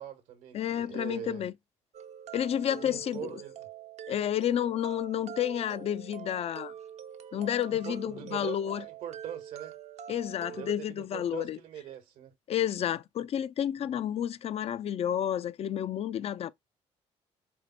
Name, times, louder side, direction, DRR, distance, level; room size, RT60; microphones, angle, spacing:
voice 1, 0.0-1.5 2.7-3.7 7.7-9.8 10.5-12.3, right 10 dB, 80° right, 1.1 m, -42 dB
voice 2, 0.5-1.5 2.3-3.3 4.1-6.7 7.3-8.8 10.1-11.6 12.5-16.5, left 10 dB, 50° left, 0.4 m, -30 dB
sound 1, 1.9-10.7, right 9 dB, 55° right, 0.5 m, -45 dB
4.4 x 2.1 x 4.2 m
supercardioid pair, 65°, 14 cm